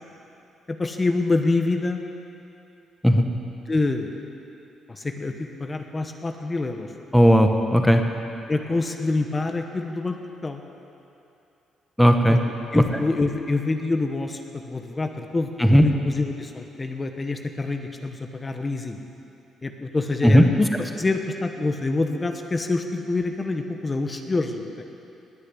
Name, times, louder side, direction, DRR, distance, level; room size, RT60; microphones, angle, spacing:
voice 1, 0.7-2.0 3.7-4.1 4.9-6.9 8.5-10.2 10.4-10.6 12.3-12.4 12.7-19.0 19.6-24.8, left 3 dB, 25° left, 5 dB, 1.1 m, -26 dB
voice 2, 7.1-8.0 12.0-12.4 12.7-12.8 15.6-15.8 20.2-20.4, equal, ahead, 4 dB, 1.1 m, -15 dB
19.5 x 6.6 x 9.9 m, 2.8 s
cardioid pair, 90°, 0 cm